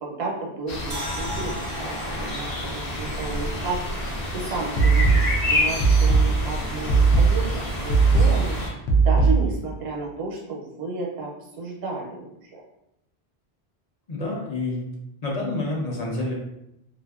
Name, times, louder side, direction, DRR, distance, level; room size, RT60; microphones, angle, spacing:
voice 1, 0.0-11.3 11.6-12.6, right 3 dB, 80° right, -1 dB, 0.8 m, -33 dB
sound 1, 0.7-8.7, left 1 dB, 65° left, 0.9 m, -29 dB
sound 2, 0.9-4.1 4.4-4.5, equal, 40° right, 0.5 m, -38 dB
sound 3, 4.8-9.7, right 4 dB, 90° left, 0.8 m, -19 dB
voice 2, 14.1-14.9 15.2-16.3, left 2 dB, 45° left, -2 dB, 0.6 m, -28 dB
2.4 x 2.4 x 2.3 m, 0.82 s
omnidirectional pair, 1.1 m